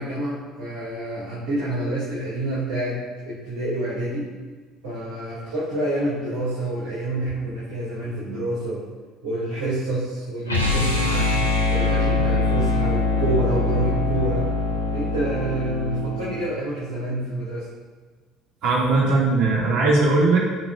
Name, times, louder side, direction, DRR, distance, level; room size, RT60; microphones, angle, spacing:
voice 1, 0.0-4.3 4.8-8.8 9.2-11.3 11.7-14.5 14.9-17.7, right 1 dB, 70° right, -9 dB, 2.7 m, -27 dB
sound 1, 10.5-16.5, left 2 dB, 90° left, 1.1 m, -23 dB
voice 2, 18.6-20.4, right 3 dB, 55° right, -4 dB, 2.3 m, -19 dB
15.0 x 6.0 x 2.6 m, 1.4 s
figure-of-eight pair, 60°, 0 cm